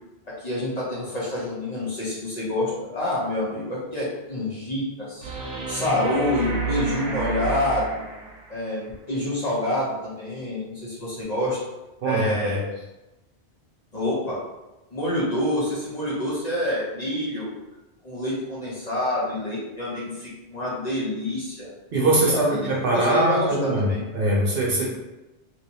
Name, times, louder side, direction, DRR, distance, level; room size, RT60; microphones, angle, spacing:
voice 1, 0.4-5.3 5.7-8.0 8.5-11.6 12.0-12.6 13.9-14.4 14.9-17.5 18.0-21.7 22.1-24.0, left 1 dB, 40° left, -7 dB, 1.0 m, -27 dB
sound 1, 5.2-8.6 11.2-11.3, right 5 dB, 90° right, 1.0 m, -30 dB
voice 2, 12.0-12.6 21.9-24.9, right 1 dB, 55° right, -3 dB, 0.9 m, -22 dB
3.2 x 3.0 x 2.7 m, 1.0 s
omnidirectional pair, 1.2 m